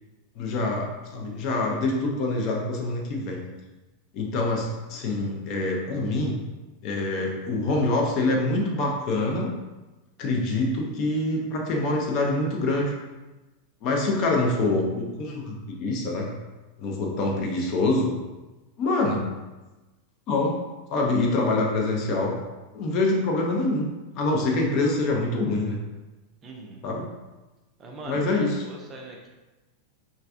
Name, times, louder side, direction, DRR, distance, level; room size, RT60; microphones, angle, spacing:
voice 1, 0.4-3.4 4.1-6.4 6.8-9.5 10.2-12.9 13.8-16.3 16.8-18.1 18.8-19.3 20.3-20.6 20.9-22.3 22.7-23.9 24.2-25.8 26.8-27.0 28.1-28.6, left 2 dB, 40° left, 0 dB, 0.5 m, -25 dB
voice 2, 26.4-26.8 27.8-29.3, right 2 dB, 25° right, 0 dB, 0.5 m, -42 dB
3.1 x 2.5 x 2.4 m, 1.1 s
figure-of-eight pair, 90°, 0 cm